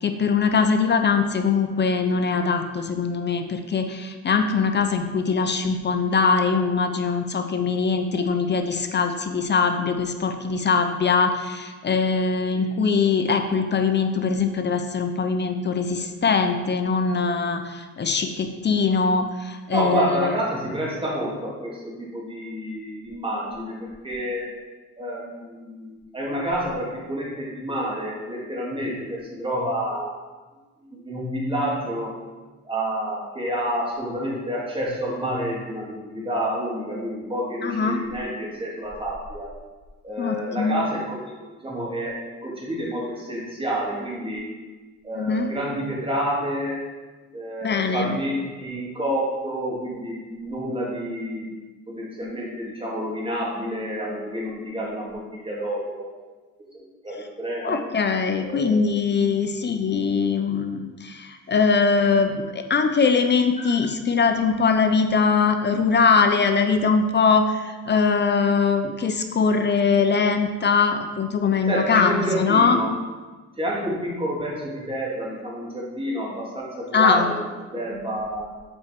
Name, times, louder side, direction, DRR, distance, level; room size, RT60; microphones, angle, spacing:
voice 1, 0.0-20.3 37.6-38.0 40.2-40.8 45.1-45.5 47.6-48.1 57.6-72.8 76.9-77.3, left 5 dB, 35° left, 6 dB, 0.7 m, -22 dB
voice 2, 19.7-24.5 25.0-30.1 30.9-32.2 32.6-39.5 40.0-41.3 41.6-44.5 45.0-46.8 47.3-51.5 51.9-56.1 56.7-57.8 58.4-58.9 71.7-72.9 73.6-77.5 77.7-78.5, right 1 dB, 20° right, -4 dB, 2.3 m, -29 dB
7.6 x 4.5 x 4.5 m, 1.3 s
cardioid pair, 90°, 30 cm